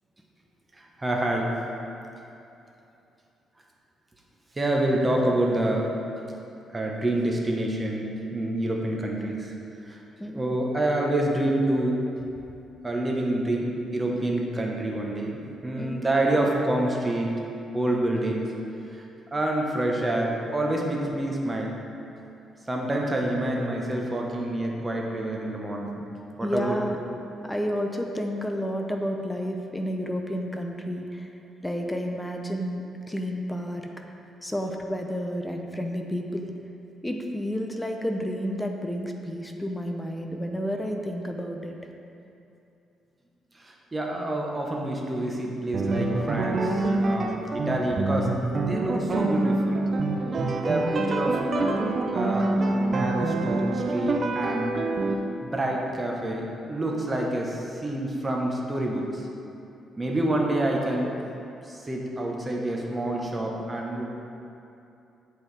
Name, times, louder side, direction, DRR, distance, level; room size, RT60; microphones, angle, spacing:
voice 1, 0.8-1.5 4.6-5.9 6.7-9.5 9.8-10.0 10.3-12.0 12.8-15.3 15.6-17.3 17.7-18.5 18.9-19.1 19.3-21.7 22.7-25.9 26.4-26.8 43.6-49.8 50.6-51.4 52.1-54.8 55.4-59.3 60.0-61.1 61.7-64.0, right 1 dB, 20° right, 0 dB, 0.9 m, -27 dB
voice 2, 10.2-10.5 15.8-16.0 26.4-27.0 27.4-31.3 31.6-33.8 34.4-36.5 37.0-41.8 50.2-50.6, equal, 10° left, 3 dB, 0.6 m, -31 dB
sound 1, 45.7-55.1, right 2 dB, 45° right, 0.5 m, -26 dB
7.8 x 4.5 x 3.3 m, 2.7 s
cardioid pair, 90°, 0 cm